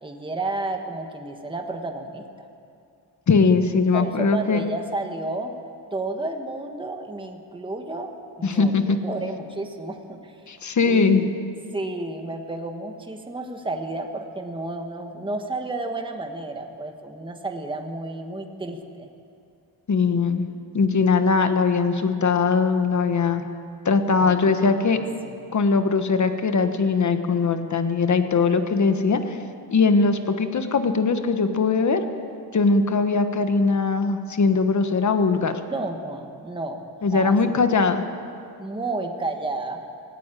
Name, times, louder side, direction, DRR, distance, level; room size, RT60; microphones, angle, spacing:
voice 1, 0.0-2.5 3.9-5.5 5.9-8.1 8.4-10.4 10.8-11.3 11.7-19.1 24.2-24.5 24.8-25.4 35.7-36.9 37.1-37.4 38.6-39.8, right 2 dB, 10° right, 4 dB, 1.3 m, -31 dB
voice 2, 3.3-4.6 8.4-9.0 10.5-11.2 19.9-20.5 20.7-23.4 23.8-25.0 25.5-29.4 29.7-32.0 32.5-35.5 37.0-38.0, left 4 dB, 40° left, 8 dB, 1.4 m, -20 dB
18.0 x 17.5 x 9.1 m, 2.4 s
wide cardioid pair, 160°, 42 cm